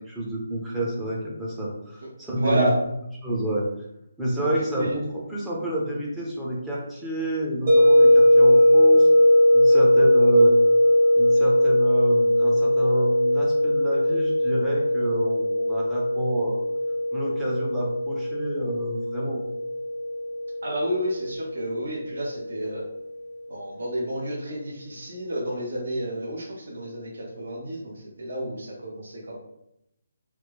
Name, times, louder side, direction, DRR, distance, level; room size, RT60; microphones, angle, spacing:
voice 1, 0.1-2.7 3.2-3.7 4.2-9.1 9.5-10.6 11.2-16.6 17.1-19.4, right 1 dB, 5° right, -6 dB, 0.5 m, -28 dB
voice 2, 2.4-2.8 4.3-4.5 4.8-5.0 20.6-22.8 23.5-29.4, right 1 dB, 65° right, -3 dB, 0.8 m, -30 dB
sound 1, 7.7-22.6, left 1 dB, 40° right, 0.9 m, -20 dB
3.0 x 2.1 x 3.3 m, 0.82 s
hypercardioid pair, 170°, 0 cm